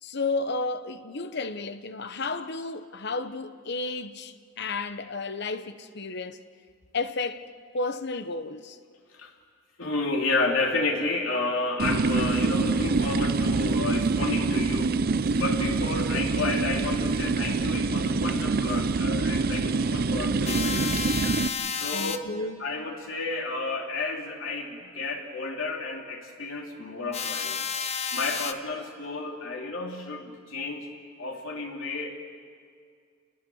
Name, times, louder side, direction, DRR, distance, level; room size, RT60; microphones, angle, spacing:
voice 1, 0.0-6.4 6.9-7.5 7.7-8.8 21.9-22.6, left 3 dB, 60° left, 0.9 m, -32 dB
voice 2, 9.8-21.4 21.8-22.3 22.6-27.6 28.1-30.9 31.2-32.2, left 3 dB, 90° left, 3.1 m, -31 dB
sound 1, 11.8-21.5, right 4 dB, 50° right, 0.5 m, -25 dB
sound 2, 20.5-22.2 27.1-28.5, left 6 dB, 35° left, 0.8 m, -31 dB
30.0 x 20.0 x 6.4 m
head